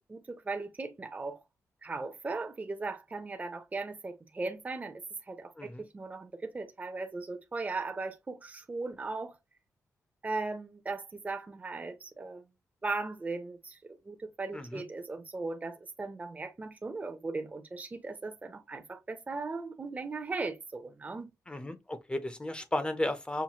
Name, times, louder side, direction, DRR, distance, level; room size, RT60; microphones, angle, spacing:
voice 1, 0.1-1.4 1.8-9.4 10.2-12.4 12.8-13.8 14.1-21.3, right 3 dB, 25° right, 0.6 m, -38 dB
voice 2, 14.5-14.8 21.5-23.4, left 1 dB, 15° left, 0.6 m, -34 dB
5.7 x 2.2 x 2.9 m
cardioid pair, 95°, 6 cm